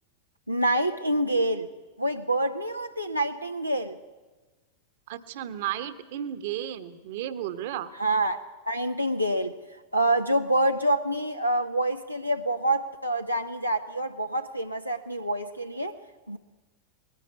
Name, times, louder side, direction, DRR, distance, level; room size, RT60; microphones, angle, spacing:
voice 1, 0.5-1.7 2.0-3.9 8.0-8.4 8.7-9.5 9.9-16.0 16.3-16.4, right 1 dB, 90° right, 4 dB, 0.8 m, -26 dB
voice 2, 5.1-7.9, right 11 dB, 50° right, 12 dB, 1.2 m, -33 dB
20.5 x 16.0 x 9.5 m, 1.3 s
figure-of-eight pair, 90°, 0 cm